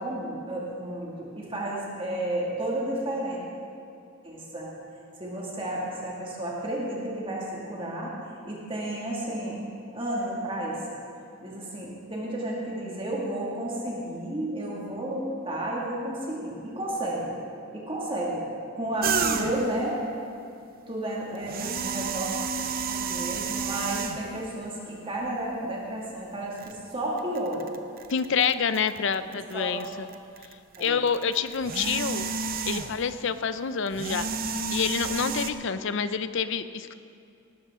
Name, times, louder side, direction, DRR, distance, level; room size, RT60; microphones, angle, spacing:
voice 1, 0.0-3.4 4.2-4.8 5.2-8.1 8.4-9.6 9.9-10.8 11.4-17.3 17.7-18.5 18.7-20.0 20.9-22.3 22.9-27.7 29.5-29.9 30.8-31.0, right 1 dB, 25° right, -4 dB, 2.2 m, -32 dB
sound 1, 19.0-19.8 21.4-24.4 25.2-25.3 26.6-26.7 27.2-29.5 29.8-33.2 33.9-35.5, right 5 dB, 45° right, 0.6 m, -31 dB
voice 2, 28.1-30.1 30.8-32.3 32.7-34.3 34.7-36.9, left 6 dB, 60° left, 12 dB, 0.5 m, -27 dB
19.0 x 12.5 x 3.7 m, 2.6 s
head